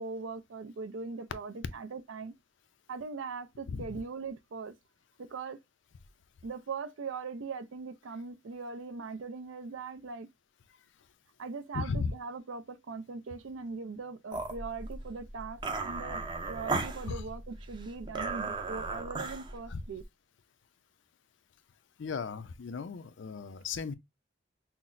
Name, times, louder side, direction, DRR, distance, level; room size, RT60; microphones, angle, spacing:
voice 1, 0.0-2.3 2.9-4.7 5.2-5.6 6.4-10.3 11.4-16.2 16.5-20.0, right 4 dB, 80° right, 0.4 m, -40 dB
voice 2, 11.7-12.1 17.1-17.2 19.7-19.8 22.0-23.9, left 5 dB, 70° left, 0.4 m, -35 dB
sound 1, 14.3-20.0, right 3 dB, 25° right, 0.6 m, -36 dB
5.8 x 2.0 x 2.5 m
head